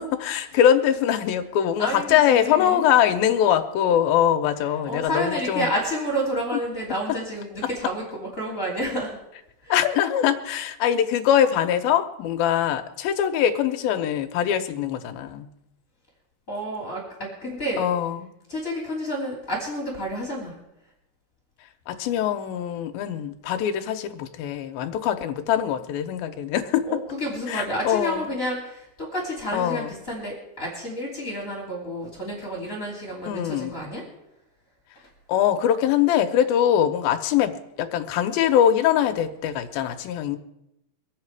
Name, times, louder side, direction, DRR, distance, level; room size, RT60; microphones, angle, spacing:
voice 1, 0.0-5.7 6.5-6.6 9.7-15.5 17.8-18.3 21.9-26.9 27.5-28.3 29.5-29.9 33.2-33.8 35.3-40.4, left 10 dB, 80° left, 7 dB, 2.6 m, -22 dB
voice 2, 1.8-2.8 4.8-9.2 9.6-9.7 16.5-17.8 18.5-20.6 26.9-34.0, equal, 20° left, -4 dB, 3.1 m, -30 dB
24.0 x 8.3 x 4.7 m, 0.85 s
omnidirectional pair, 4.4 m